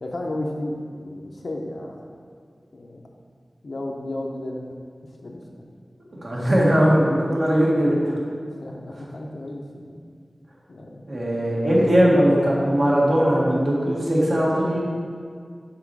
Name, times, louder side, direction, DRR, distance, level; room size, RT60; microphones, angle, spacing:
voice 1, 0.0-1.9 2.7-3.0 3.6-4.7 5.2-5.6 8.4-10.0 10.7-11.0 11.8-12.4, left 1 dB, 75° left, -1 dB, 0.6 m, -33 dB
voice 2, 6.2-8.1 11.1-14.8, equal, 60° right, -5 dB, 1.6 m, -19 dB
5.8 x 4.4 x 4.7 m, 2.1 s
wide cardioid pair, 75°, 0 cm